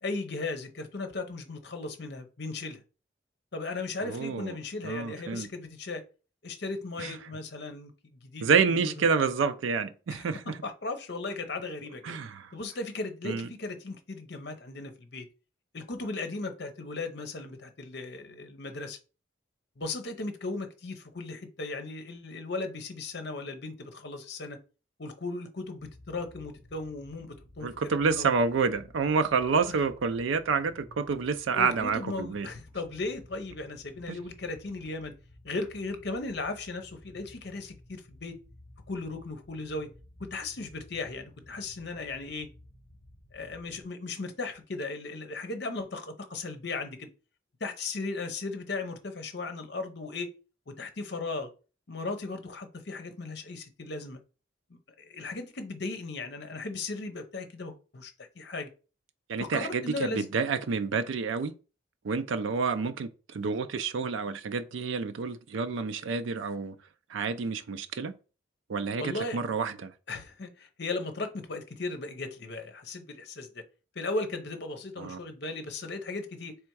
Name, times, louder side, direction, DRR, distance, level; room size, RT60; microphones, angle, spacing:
voice 1, 0.0-2.8 3.5-6.0 6.4-8.9 10.1-12.2 12.5-15.3 15.7-19.0 19.8-24.6 25.0-27.7 28.0-28.3 29.6-29.8 31.5-35.1 35.4-38.4 38.9-39.9 40.2-42.5 43.3-47.1 47.6-50.3 50.7-51.5 51.9-54.2 54.7-58.7 59.4-60.3 69.0-69.4 70.1-73.6 73.9-76.6, left 3 dB, 60° left, 0.8 m, -37 dB
voice 2, 4.0-4.6 4.8-5.5 7.0-7.1 8.4-10.6 12.0-12.5 13.2-13.5 27.6-32.5 34.1-34.2 59.3-61.5 62.0-66.8 67.1-68.1 68.7-69.9 75.0-75.2, right 5 dB, 85° right, 0.4 m, -28 dB
sound 1, 25.8-43.8, left 1 dB, 5° left, 1.8 m, -55 dB
3.4 x 3.3 x 4.6 m
head